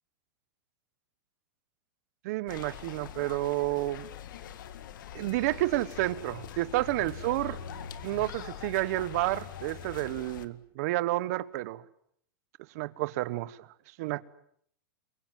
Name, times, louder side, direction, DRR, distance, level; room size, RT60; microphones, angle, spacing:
voice 1, 2.2-4.0 5.1-7.6 8.0-11.8 12.7-13.7 14.0-14.2, right 17 dB, 50° right, 1.2 m, -30 dB
sound 1, 2.5-10.5, left 8 dB, 70° left, 2.0 m, -43 dB
29.5 x 23.5 x 7.5 m
supercardioid pair, 170°, 11 cm